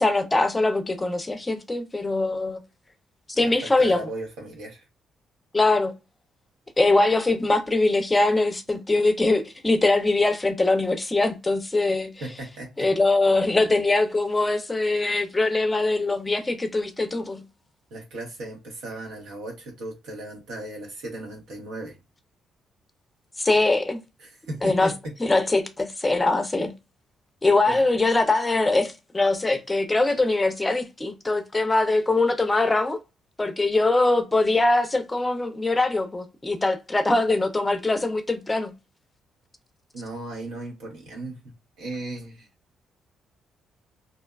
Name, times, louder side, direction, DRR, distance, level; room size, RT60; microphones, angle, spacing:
voice 1, 0.0-2.6 3.4-4.1 5.5-5.9 6.8-12.1 12.8-17.4 23.4-24.0 24.6-24.9 25.2-26.7 27.4-33.0 33.4-38.7, left 2 dB, 20° left, 0.5 m, -22 dB
voice 2, 3.3-4.8 12.2-12.7 17.9-22.0 24.2-25.1 27.7-27.8 39.9-42.5, right 2 dB, 85° right, 1.1 m, -36 dB
2.5 x 2.2 x 2.3 m
cardioid pair, 90°, 0 cm